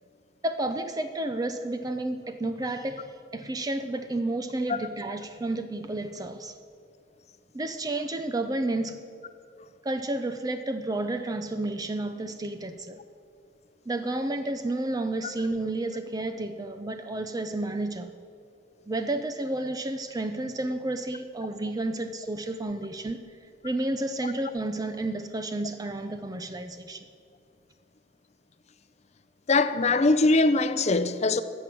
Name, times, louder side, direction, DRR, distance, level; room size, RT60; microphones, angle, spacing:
voice 1, 0.4-6.6 7.5-9.0 9.8-13.0 13.9-18.1 18.9-23.2 23.6-27.1, right 2 dB, 20° right, 0.5 m, -31 dB
voice 2, 29.5-31.4, left 3 dB, 35° left, 0.6 m, -22 dB
14.5 x 6.1 x 9.2 m
head